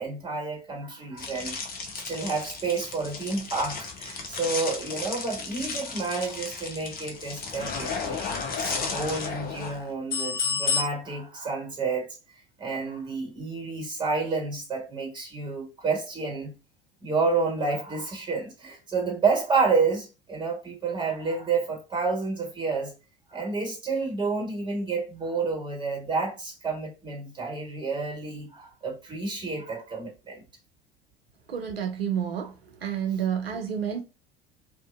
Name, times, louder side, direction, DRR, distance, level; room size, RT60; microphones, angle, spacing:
voice 1, 0.0-1.5 1.9-8.2 8.6-12.1 12.6-16.6 17.0-22.9 23.3-30.4, right 4 dB, 15° right, 1.4 m, -29 dB
sound 1, 1.2-10.8, left 5 dB, 30° left, 0.7 m, -33 dB
voice 2, 31.5-32.5 32.8-34.0, right 8 dB, 80° right, 0.5 m, -29 dB
2.5 x 2.5 x 2.3 m
figure-of-eight pair, 70°, 29 cm